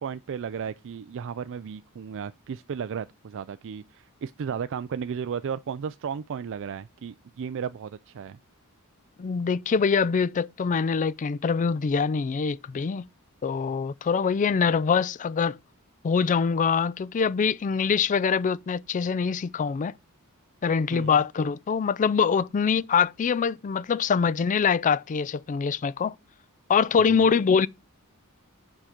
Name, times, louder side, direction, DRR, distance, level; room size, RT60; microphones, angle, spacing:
voice 1, 0.0-8.4 20.9-21.2 27.1-27.3, right 7 dB, 60° right, 0.4 m, -34 dB
voice 2, 9.2-13.1 13.4-15.6 16.0-19.9 20.6-26.2 26.7-27.7, left 6 dB, 35° left, 0.3 m, -24 dB
7.3 x 5.0 x 5.9 m
head